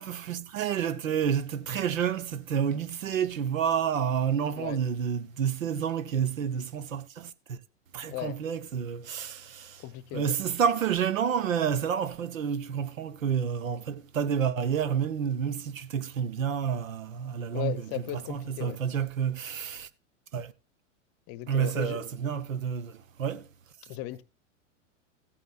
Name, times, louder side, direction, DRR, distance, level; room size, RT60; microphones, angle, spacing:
voice 1, 0.0-7.6 7.9-9.8 10.1-19.9 20.3-20.5 21.5-23.5, right 8 dB, 80° right, 1.0 m, -29 dB
voice 2, 9.8-10.3 17.5-18.8 21.3-22.0 23.8-24.2, left 14 dB, 35° left, 0.8 m, -36 dB
14.5 x 9.0 x 2.4 m
hypercardioid pair, 105°, 39 cm